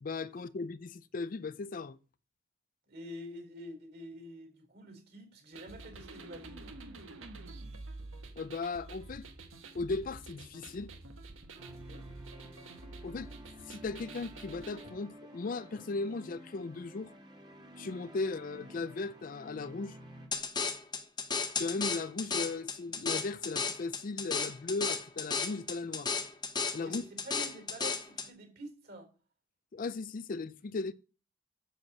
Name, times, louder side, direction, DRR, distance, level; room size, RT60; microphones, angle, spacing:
voice 1, 0.0-2.0 8.4-9.3 9.7-10.9 13.0-13.3 13.7-17.1 17.8-20.0 21.6-26.1 26.7-27.0 29.7-30.9, left 3 dB, 40° left, 0.4 m, -37 dB
voice 2, 2.9-6.8 11.9-12.1 26.8-29.1, equal, 55° right, 3.9 m, -47 dB
sound 1, 5.5-14.9, right 3 dB, 80° right, 1.5 m, -48 dB
sound 2, 11.6-20.3, equal, 20° right, 1.6 m, -51 dB
sound 3, 20.3-28.3, left 5 dB, 20° left, 1.0 m, -34 dB
7.7 x 7.5 x 6.1 m
head